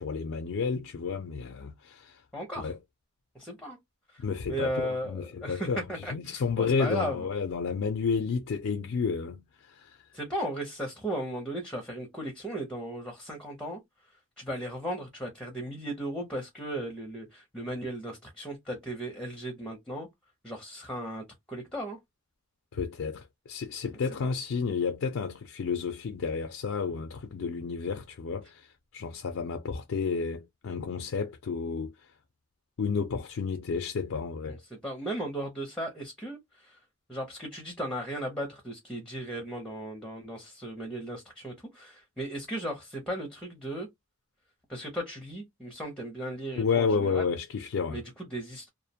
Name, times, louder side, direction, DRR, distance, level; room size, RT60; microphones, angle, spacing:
voice 1, 0.0-2.2 2.6-2.8 4.2-5.8 6.1-10.0 22.7-28.7 28.9-31.9 32.8-34.6 46.6-48.0, left 5 dB, 70° left, 0.4 m, -31 dB
voice 2, 2.3-2.7 3.3-3.8 4.1-7.3 10.1-13.8 14.4-20.1 20.4-22.0 34.5-36.8 37.1-43.9 44.7-47.3 47.9-48.7, right 1 dB, 5° left, 0.6 m, -36 dB
2.4 x 2.1 x 2.7 m
head